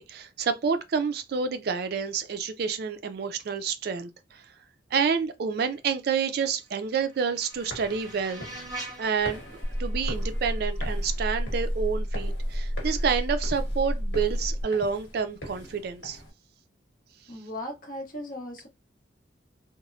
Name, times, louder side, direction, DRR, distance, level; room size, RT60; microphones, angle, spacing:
voice 1, 0.0-4.4 4.9-8.5 9.0-9.4 9.8-16.2, right 6 dB, 55° right, 0.3 m, -29 dB
sound 1, 6.5-11.5, right 2 dB, 20° right, 0.9 m, -45 dB
sound 2, 7.5-16.3, left 1 dB, 80° left, 1.1 m, -44 dB
sound 3, 9.6-14.6, equal, 5° right, 1.3 m, -30 dB
voice 2, 17.3-18.7, left 1 dB, 45° left, 0.8 m, -37 dB
2.9 x 2.0 x 2.5 m
head